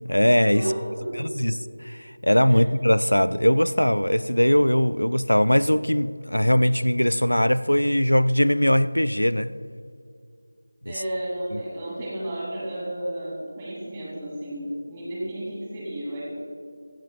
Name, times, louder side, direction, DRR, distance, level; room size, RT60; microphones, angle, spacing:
voice 1, 0.0-0.7 1.1-9.5 10.9-11.0 11.5-11.6, equal, 80° left, 15 dB, 0.4 m, -21 dB
voice 2, 0.5-1.2 2.5-2.7 10.8-16.2, right 1 dB, 15° right, -6 dB, 3.0 m, -32 dB
16.0 x 14.5 x 2.5 m, 2.3 s
figure-of-eight pair, 165°, 0 cm